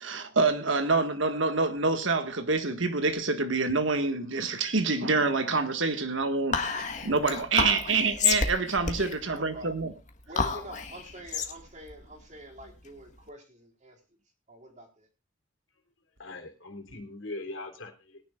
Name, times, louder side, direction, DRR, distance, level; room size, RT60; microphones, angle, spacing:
voice 1, 0.0-6.6 7.0-9.9, right 3 dB, 75° right, 1.7 m, -26 dB
Whispering, 6.5-13.2, left 5 dB, 35° left, 1.7 m, -31 dB
voice 2, 9.3-9.8 10.3-14.2 14.5-15.1, right 1 dB, 35° right, 4.1 m, -46 dB
voice 3, 16.2-18.2, left 2 dB, 75° left, 3.3 m, -41 dB
21.0 x 10.5 x 2.4 m
head